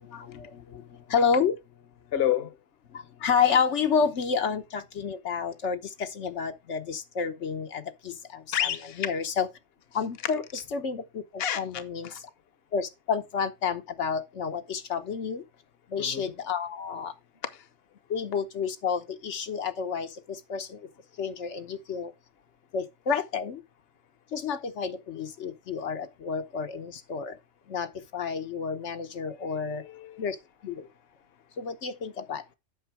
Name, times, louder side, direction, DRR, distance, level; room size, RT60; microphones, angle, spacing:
voice 1, 0.1-0.5 1.1-1.5 3.2-7.8 9.0-9.5 9.9-11.0 11.6-12.1 12.7-15.4 15.9-17.1 18.1-20.1 20.5-20.7 21.2-22.1 22.7-23.6 24.3-27.3 27.7-27.9 28.1-29.8 30.2-30.3 30.6-30.7 31.6-32.4, left 6 dB, 80° left, 1.3 m, -29 dB
voice 2, 2.1-2.5 8.5-9.1 11.4-11.6 12.0-12.2 16.0-16.3 29.6-30.3, left 11 dB, 60° left, 1.1 m, -29 dB
8.4 x 5.9 x 4.6 m
omnidirectional pair, 1.2 m